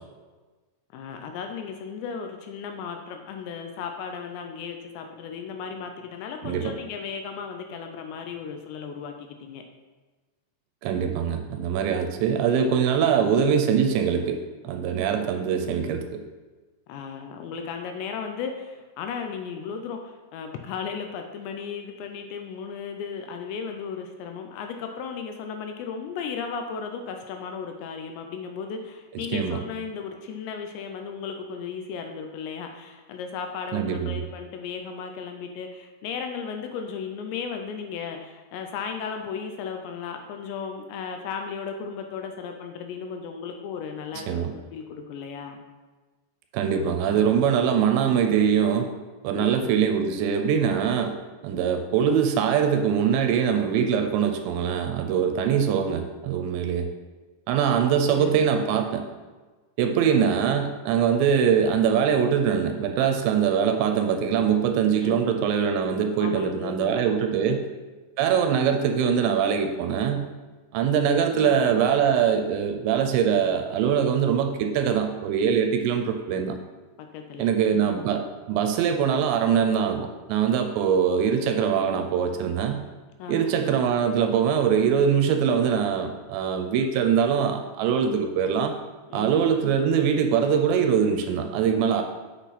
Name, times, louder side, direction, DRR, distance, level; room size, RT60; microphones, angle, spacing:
voice 1, 0.9-9.6 13.0-13.3 16.9-45.6 49.4-49.9 55.5-55.6 57.6-57.7 58.0-58.3 60.1-60.4 64.9-65.3 66.2-67.1 67.5-67.6 71.3-71.6 77.0-78.1 83.2-83.5 89.1-89.5, left 6 dB, 80° left, 5 dB, 2.7 m, -35 dB
voice 2, 10.8-16.2 29.3-29.6 33.7-34.2 44.3-44.5 46.5-48.9 49.2-51.1 51.4-56.9 57.5-59.0 59.8-67.6 68.2-70.3 70.7-76.6 77.4-82.8 83.3-88.7 89.1-92.0, right 7 dB, 80° right, 5 dB, 2.7 m, -23 dB
8.2 x 6.0 x 4.1 m, 1.3 s
omnidirectional pair, 5.3 m